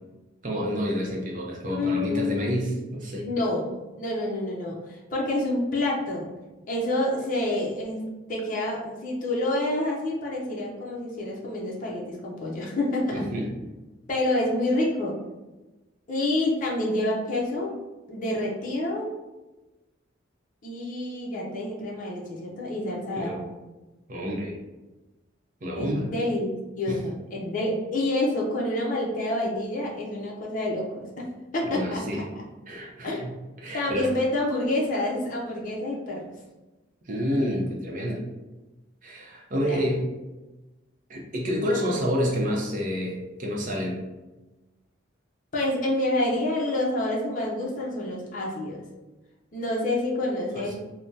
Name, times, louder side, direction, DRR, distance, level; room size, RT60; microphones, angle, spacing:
voice 1, 0.4-3.3 13.1-13.5 23.2-23.4 24.1-24.6 25.6-26.1 26.9-27.0 31.7-32.2 32.7-33.3 33.6-34.1 37.1-38.2 39.0-40.1 41.1-44.1 50.6-50.8, equal, 40° right, -2 dB, 0.6 m, -28 dB
voice 2, 1.7-2.6 3.2-6.3 6.7-8.0 8.3-13.3 14.1-15.2 16.1-17.8 18.1-19.1 20.6-23.5 25.7-32.0 32.4-32.5 33.0-33.2 33.7-36.3 39.6-39.8 45.5-48.8 49.5-50.8, left 1 dB, 45° left, -3 dB, 0.6 m, -28 dB
3.4 x 2.0 x 2.6 m, 1.1 s
head